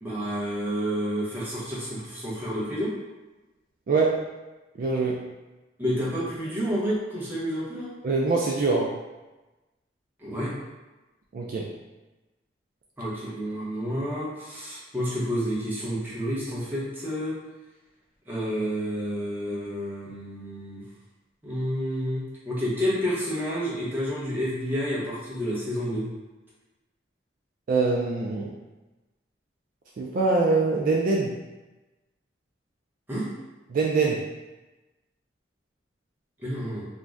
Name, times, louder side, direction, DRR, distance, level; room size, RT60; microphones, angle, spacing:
voice 1, 0.0-2.9 5.8-7.9 10.2-10.5 13.0-17.4 18.3-20.8 21.4-26.1 33.1-33.3 36.4-36.9, equal, 10° right, -8 dB, 0.8 m, -29 dB
voice 2, 3.9-4.2 4.8-5.2 8.0-8.9 11.3-11.7 27.7-28.5 30.0-31.3 33.7-34.2, right 3 dB, 50° right, -2 dB, 0.3 m, -24 dB
2.6 x 2.1 x 3.4 m, 1.1 s
head